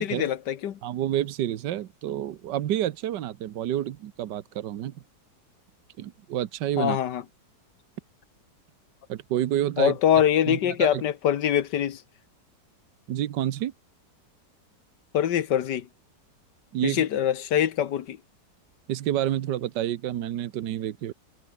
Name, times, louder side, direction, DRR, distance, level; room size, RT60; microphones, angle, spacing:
voice 1, 0.0-0.8 6.8-7.2 9.8-12.0 15.1-15.9 16.8-18.2, left 10 dB, 75° left, 1.7 m, -24 dB
voice 2, 0.8-4.9 6.0-7.0 9.1-9.9 10.5-11.0 13.1-13.7 16.7-17.0 18.9-21.1, right 12 dB, 80° right, 1.5 m, -29 dB
omnidirectional pair, 1.9 m